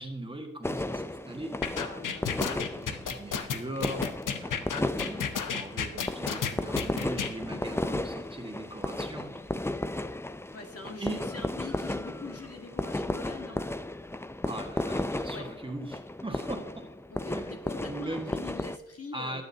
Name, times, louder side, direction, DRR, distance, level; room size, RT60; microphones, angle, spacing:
voice 1, 0.0-1.5 2.2-9.3 11.0-11.2 14.5-16.6 17.3-17.5 17.9-18.3 19.1-19.4, right 1 dB, 15° right, 3 dB, 1.6 m, -40 dB
sound 1, 0.6-18.8, left 1 dB, 10° left, 0.5 m, -34 dB
sound 2, 1.6-7.3, left 7 dB, 90° left, 0.9 m, -32 dB
voice 2, 1.7-2.4 10.5-13.6 15.3-15.5 17.1-19.4, left 3 dB, 50° left, 3 dB, 1.6 m, -44 dB
19.5 x 7.8 x 2.8 m, 0.95 s
cardioid pair, 75°, 31 cm